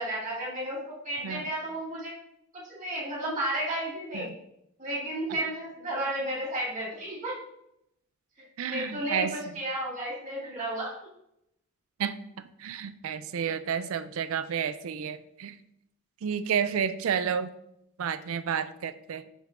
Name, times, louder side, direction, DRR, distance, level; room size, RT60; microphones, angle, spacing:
voice 1, 0.0-2.1 2.5-4.3 4.8-7.3 8.6-10.9, right 1 dB, 35° right, -6 dB, 2.2 m, -33 dB
voice 2, 8.6-9.3 12.0-15.6 16.2-17.5 18.0-19.2, right 7 dB, 70° right, 11 dB, 0.4 m, -31 dB
7.2 x 5.3 x 2.5 m, 0.78 s
head